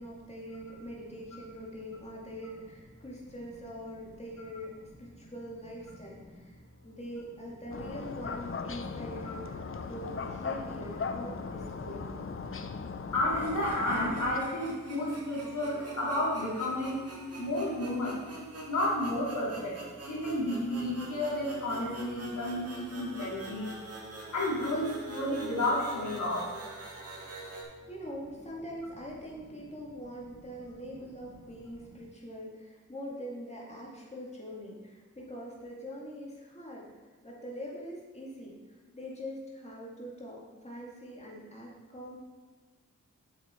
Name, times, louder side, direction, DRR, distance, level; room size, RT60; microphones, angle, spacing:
voice 1, 0.0-12.1 27.9-36.9 37.2-42.2, equal, 20° left, -4 dB, 2.3 m, -43 dB
sound 1, 7.7-14.4, left 5 dB, 40° left, 0.7 m, -38 dB
voice 2, 13.1-17.0 17.4-18.2 18.7-23.7 24.3-26.5, left 1 dB, 70° left, -5 dB, 2.8 m, -31 dB
sound 2, 13.3-27.6, right 2 dB, 50° right, 2.2 m, -45 dB
8.2 x 7.3 x 4.5 m, 1.3 s
cardioid pair, 65°, 32 cm